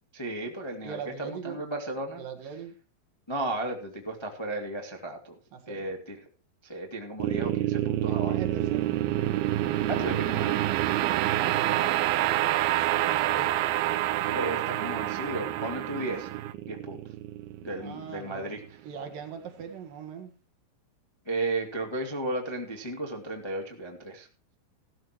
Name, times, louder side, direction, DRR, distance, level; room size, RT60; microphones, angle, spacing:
voice 1, 0.1-2.2 3.3-5.3 5.7-6.2 6.6-8.4 9.9-10.6 14.3-16.3 16.7-17.0 17.6-18.6 21.2-24.3, right 2 dB, 25° left, 2 dB, 0.5 m, -34 dB
voice 2, 0.8-1.6 2.2-2.7 5.5-5.9 8.0-8.9 11.4-13.6 17.8-20.3, right 7 dB, 60° right, 5 dB, 2.9 m, -40 dB
sound 1, 7.2-18.4, right 14 dB, 80° right, 2.2 m, -27 dB
16.5 x 13.0 x 3.1 m, 0.35 s
omnidirectional pair, 5.2 m